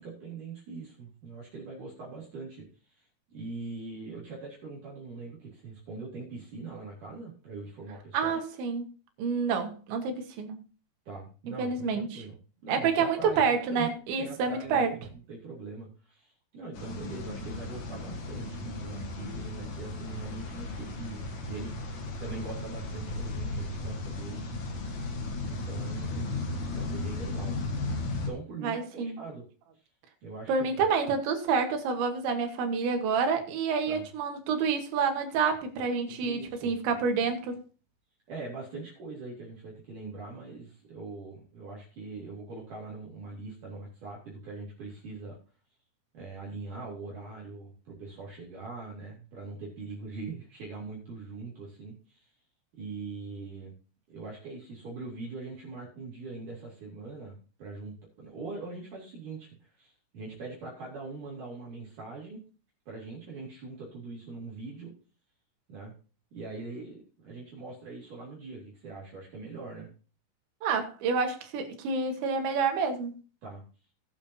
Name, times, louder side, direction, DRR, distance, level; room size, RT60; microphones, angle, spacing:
voice 1, 0.0-8.4 11.1-12.4 12.6-13.9 14.2-21.8 22.2-24.5 25.4-26.4 26.7-27.6 28.1-29.5 29.7-29.9 30.2-30.5 33.9-34.1 36.1-36.7 38.3-45.4 46.1-52.3 52.7-53.7 54.1-62.4 62.9-64.9 65.7-65.9 66.3-69.9 73.4-73.6, right 3 dB, 50° right, -5 dB, 3.9 m, -42 dB
voice 2, 8.1-8.8 9.2-10.6 11.6-12.2 12.7-14.9 28.6-29.2 30.5-37.6 70.6-73.2, right 5 dB, 85° right, 5 dB, 3.8 m, -28 dB
sound 1, 16.7-28.3, left 2 dB, 55° left, 2.4 m, -35 dB
19.0 x 7.2 x 2.7 m, 0.35 s
omnidirectional pair, 5.1 m